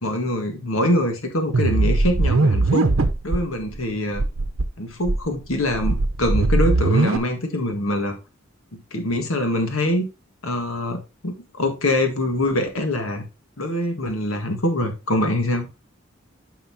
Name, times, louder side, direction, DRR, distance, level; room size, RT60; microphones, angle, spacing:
voice 1, 0.0-2.9 3.2-4.2 4.8-8.1 8.9-10.1 10.4-13.2 13.6-15.7, left 1 dB, 90° left, 5 dB, 1.6 m, -24 dB
sound 1, 1.5-3.4 3.7-3.8 4.1-4.6 5.0-7.2, right 2 dB, 80° right, 0.7 m, -20 dB
9.2 x 5.6 x 2.8 m, 0.27 s
head